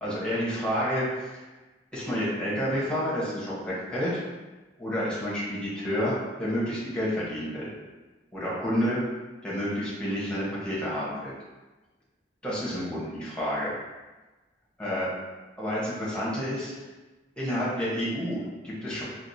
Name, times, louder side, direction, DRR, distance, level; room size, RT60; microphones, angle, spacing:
voice 1, 0.0-1.1 1.9-4.1 4.8-7.7 8.3-9.0 9.4-11.3 12.4-13.7 14.8-15.1 15.6-16.7 17.4-19.0, equal, 5° left, -9 dB, 1.0 m, -29 dB
4.6 x 2.1 x 2.7 m, 1.2 s
head